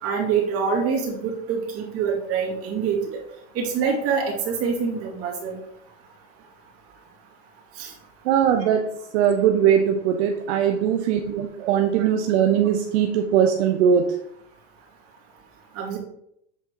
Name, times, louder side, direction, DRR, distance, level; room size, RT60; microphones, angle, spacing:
voice 1, 0.0-3.0 3.6-5.5 7.8-7.9 15.8-16.0, right 6 dB, 40° right, -1 dB, 2.3 m, -25 dB
voice 2, 8.2-14.1, right 8 dB, 70° right, 5 dB, 0.8 m, -20 dB
8.2 x 3.8 x 4.5 m, 0.76 s
supercardioid pair, 130°, 35 cm